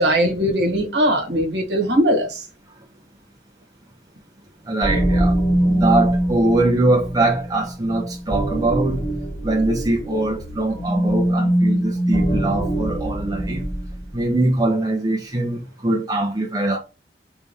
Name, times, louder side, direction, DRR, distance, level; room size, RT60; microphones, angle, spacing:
voice 1, 0.0-2.4, equal, 70° right, 1.3 m, -20 dB
voice 2, 4.6-5.3 5.7-9.0 9.4-13.6 14.1-16.8, right 2 dB, 20° right, 1.0 m, -22 dB
sound 1, 4.8-14.0, right 1 dB, 25° left, 1.6 m, -23 dB
3.5 x 3.1 x 4.3 m
head